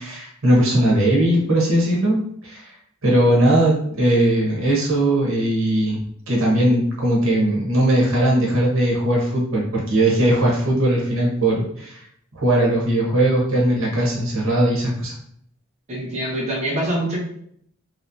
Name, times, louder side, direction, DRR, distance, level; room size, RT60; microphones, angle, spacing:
voice 1, 0.0-2.6 3.0-6.0 6.3-12.0 12.3-15.1, right 1 dB, 80° right, -3 dB, 1.1 m, -19 dB
voice 2, 15.9-17.2, right 1 dB, 35° right, -5 dB, 0.8 m, -24 dB
3.1 x 2.9 x 2.7 m, 0.67 s
head